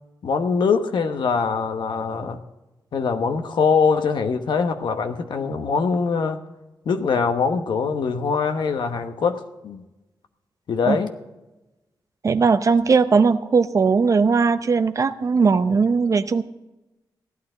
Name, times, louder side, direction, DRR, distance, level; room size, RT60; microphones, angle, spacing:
voice 1, 0.2-2.4 2.9-6.4 6.8-9.8 10.7-11.1, left 5 dB, 75° left, 7 dB, 1.1 m, -23 dB
voice 2, 12.2-16.4, right 5 dB, 40° right, 11 dB, 0.6 m, -18 dB
15.5 x 11.5 x 3.9 m, 1.0 s
wide cardioid pair, 125°, 8 cm